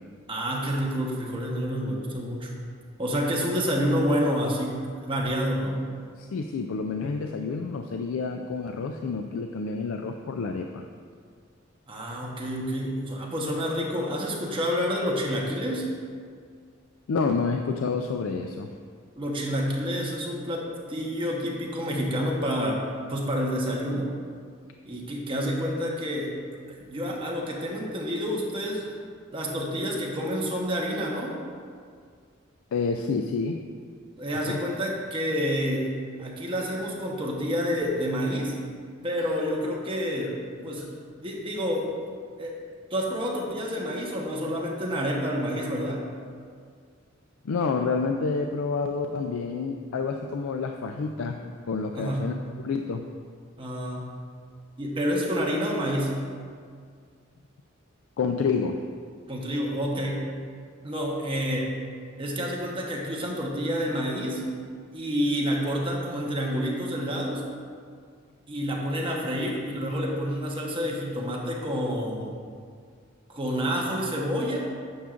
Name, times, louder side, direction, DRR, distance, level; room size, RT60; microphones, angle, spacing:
voice 1, 0.3-2.5 3.0-5.8 11.9-15.9 19.2-22.8 23.1-24.1 24.8-26.3 26.7-28.9 29.3-31.4 34.2-35.9 36.2-38.5 39.0-40.4 40.6-40.9 41.2-41.9 42.4-42.6 42.9-46.0 51.9-52.3 53.6-54.1 54.8-56.2 59.3-60.3 60.8-61.7 62.2-64.5 64.9-67.4 68.5-72.3 73.3-74.7, equal, 25° right, -2 dB, 1.0 m, -28 dB
voice 2, 6.2-10.8 17.1-18.7 32.7-33.6 34.5-34.6 47.4-52.3 52.6-53.1 58.2-58.9, left 4 dB, 80° left, 4 dB, 0.4 m, -29 dB
9.2 x 7.1 x 2.5 m, 2.1 s
head